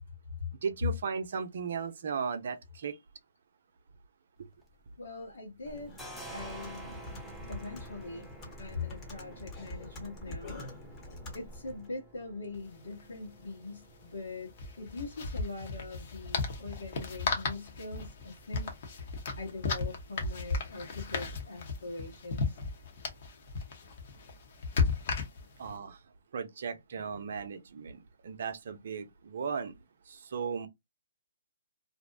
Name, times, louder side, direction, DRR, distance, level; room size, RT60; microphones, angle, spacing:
voice 1, 0.6-2.9 25.6-26.0 26.3-29.7 30.1-30.7, right 6 dB, 60° right, 0.5 m, -36 dB
sound 1, 4.4-5.3 5.6-23.1, right 2 dB, ahead, 0.7 m, -53 dB
voice 2, 5.0-5.9 6.3-8.3 8.6-10.6 11.3-14.5 14.8-22.6 26.9-27.0, left 3 dB, 80° left, 1.1 m, -42 dB
Computer keyboard, 5.6-11.9, left 1 dB, 25° left, 0.9 m, -45 dB
sound 2, 12.5-12.6 12.8-13.0 14.5-25.7, left 4 dB, 50° left, 0.9 m, -35 dB
2.6 x 2.1 x 2.5 m
hypercardioid pair, 140°, 0 cm